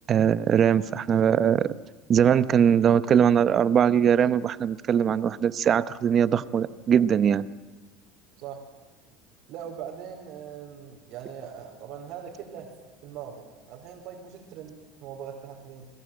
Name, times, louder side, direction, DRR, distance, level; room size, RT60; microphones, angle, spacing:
voice 1, 0.1-1.7 2.1-7.4, right 8 dB, 30° right, 16 dB, 0.8 m, -21 dB
voice 2, 8.4-8.7 9.5-12.7 13.0-15.9, right 8 dB, 50° right, -1 dB, 4.3 m, -41 dB
29.0 x 21.0 x 9.1 m, 1.2 s
cardioid pair, 160°, 0 cm